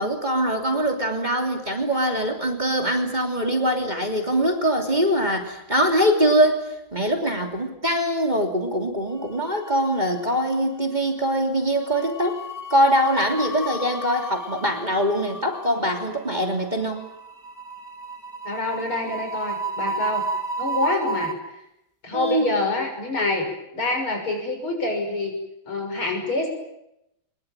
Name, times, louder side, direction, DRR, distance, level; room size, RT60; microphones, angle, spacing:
voice 1, 0.0-12.4 12.7-17.0 22.1-22.5, equal, 20° right, 3 dB, 3.2 m, -23 dB
sound 1, 9.3-10.1 10.3-10.6 11.8-21.3, right 2 dB, 10° left, 2.1 m, -33 dB
voice 2, 18.5-20.3 20.6-21.3 22.0-23.5 23.7-25.3 25.7-26.5, left 2 dB, 80° left, 3 dB, 7.2 m, -26 dB
23.5 x 22.0 x 9.1 m, 0.85 s
omnidirectional pair, 2.3 m